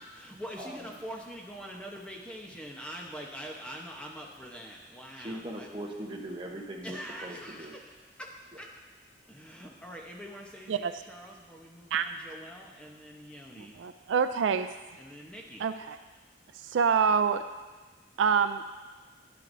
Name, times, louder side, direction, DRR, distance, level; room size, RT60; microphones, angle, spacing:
voice 1, 0.1-5.7 6.8-7.9 8.2-8.7 9.3-13.8 15.0-15.6, equal, 5° left, -1 dB, 0.9 m, -44 dB
voice 2, 5.2-7.7 8.5-8.6, right 1 dB, 25° right, 0 dB, 1.0 m, -40 dB
voice 3, 13.6-14.7 15.6-16.0 16.6-17.4 18.2-18.6, right 6 dB, 80° right, 11 dB, 0.3 m, -26 dB
10.5 x 9.4 x 2.7 m, 1.3 s
head